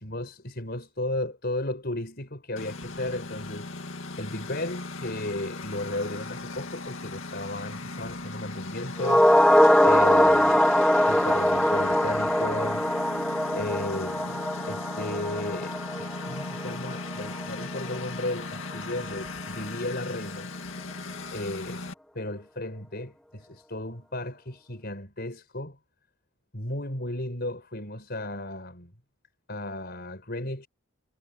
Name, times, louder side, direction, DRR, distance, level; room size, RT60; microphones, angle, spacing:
voice 1, 0.0-3.7 4.2-9.3 9.8-10.7 11.1-12.9 13.2-14.4 14.7-20.5 21.3-21.9 22.2-25.8 26.5-28.9 29.5-30.7, left 1 dB, 45° left, 5.2 m, -34 dB
Engine, 2.6-21.9, left 3 dB, 65° left, 2.3 m, -37 dB
sound 1, 9.0-17.5 17.7-17.8, equal, 5° left, 1.5 m, -22 dB
head